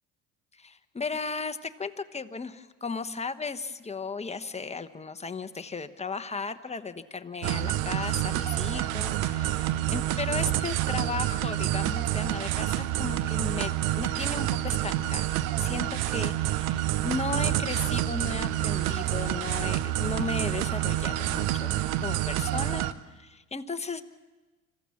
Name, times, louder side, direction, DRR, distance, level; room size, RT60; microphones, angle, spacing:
voice 1, 0.5-13.7 14.0-24.0, left 4 dB, 15° left, 9 dB, 1.2 m, -35 dB
sound 1, 7.4-22.9, right 13 dB, 80° right, 0.9 m, -28 dB
26.0 x 15.0 x 7.2 m, 1.2 s
supercardioid pair, 75°, 39 cm